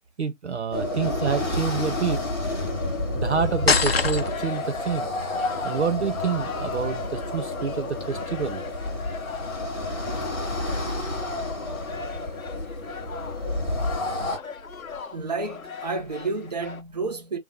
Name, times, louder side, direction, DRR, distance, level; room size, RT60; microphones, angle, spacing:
voice 1, 0.2-2.2 3.1-5.1 5.6-8.6, right 6 dB, 55° right, 0.6 m, -28 dB
sound 1, 0.7-14.4, left 2 dB, 5° left, 1.2 m, -30 dB
sound 2, 3.3-16.8, left 4 dB, 80° left, 0.9 m, -38 dB
sound 3, 3.7-4.6, left 5 dB, 50° left, 0.7 m, -22 dB
voice 2, 11.8-12.3 15.1-17.4, right 3 dB, 30° right, 0.9 m, -31 dB
3.8 x 2.6 x 4.0 m
figure-of-eight pair, 160°, 41 cm